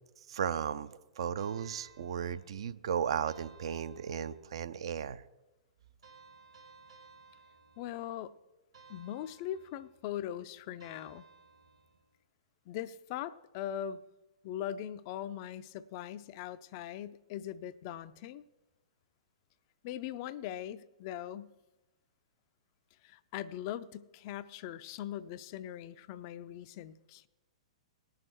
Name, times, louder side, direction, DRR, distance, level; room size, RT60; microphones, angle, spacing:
voice 1, 0.3-5.2, right 8 dB, 55° right, 13 dB, 0.5 m, -35 dB
sound 1, 1.4-2.7 3.3-4.6 6.0-8.2 8.7-10.0 10.8-12.1, right 4 dB, 75° right, 2.2 m, -59 dB
voice 2, 7.8-8.3 8.9-11.2 12.7-14.0 14.4-18.4 19.8-21.5 23.0-27.3, left 11 dB, 40° left, 14 dB, 0.4 m, -40 dB
19.0 x 6.5 x 4.5 m, 1.0 s
figure-of-eight pair, 110°, 3 cm